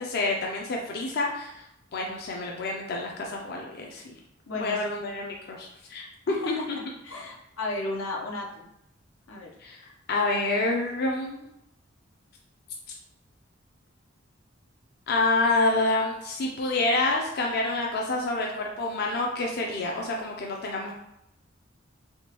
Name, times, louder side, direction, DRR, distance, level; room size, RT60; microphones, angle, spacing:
voice 1, 0.0-1.6 1.9-4.0 4.6-6.8 9.6-11.5 15.1-20.9, left 2 dB, 55° left, 0 dB, 0.5 m, -28 dB
voice 2, 4.5-4.8 6.3-8.7 9.3-9.5, left 2 dB, 90° left, 0 dB, 0.7 m, -34 dB
3.5 x 2.9 x 2.9 m, 0.80 s
head